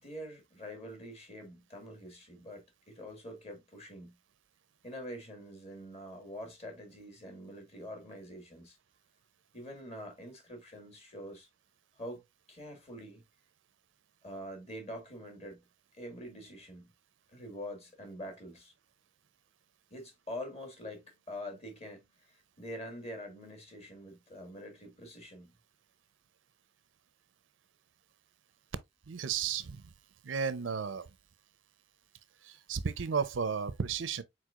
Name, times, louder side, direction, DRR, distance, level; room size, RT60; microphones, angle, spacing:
voice 1, 0.0-4.1 4.8-8.8 9.5-11.5 12.0-13.2 14.2-15.6 16.0-16.9 17.3-18.7 19.9-25.5, equal, 35° left, 1.8 m, -45 dB
voice 2, 29.1-29.8 30.2-31.1 32.4-34.2, right 6 dB, 85° right, 0.5 m, -33 dB
4.6 x 4.3 x 2.4 m
head